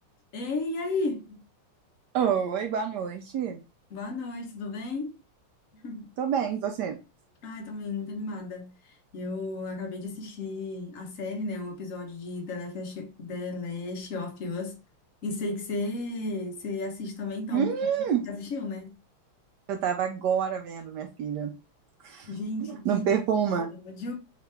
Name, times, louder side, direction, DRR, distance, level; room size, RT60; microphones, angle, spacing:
voice 1, 0.3-1.4 3.9-5.1 5.7-6.1 7.4-14.8 15.2-17.7 18.3-18.9 22.3-23.0 23.8-24.1, left 3 dB, 55° left, 0.9 m, -34 dB
voice 2, 2.1-3.6 6.2-7.0 17.5-18.3 19.7-21.5 22.0-22.3 22.7-23.7, right 8 dB, 90° right, 0.9 m, -27 dB
3.7 x 3.0 x 3.3 m
omnidirectional pair, 2.4 m